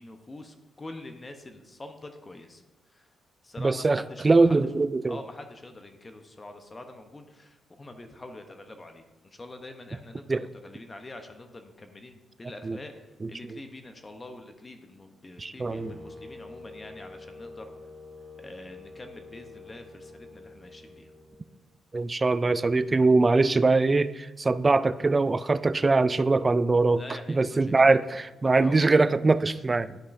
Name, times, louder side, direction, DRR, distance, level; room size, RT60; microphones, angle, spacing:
voice 1, 0.0-2.6 2.9-3.1 3.4-4.6 5.1-17.7 18.4-21.1 26.9-28.9 29.8-29.9, left 2 dB, 25° left, 6 dB, 0.8 m, -45 dB
voice 2, 3.6-5.2 10.3-10.4 12.6-12.8 13.2-13.6 15.4-16.0 21.9-27.0 27.3-30.0, right 3 dB, 30° right, 15 dB, 0.3 m, -22 dB
sound 1, 15.7-21.7, left 3 dB, 60° right, 2.3 m, -47 dB
10.0 x 5.5 x 2.6 m, 1.1 s
supercardioid pair, 65°, 0 cm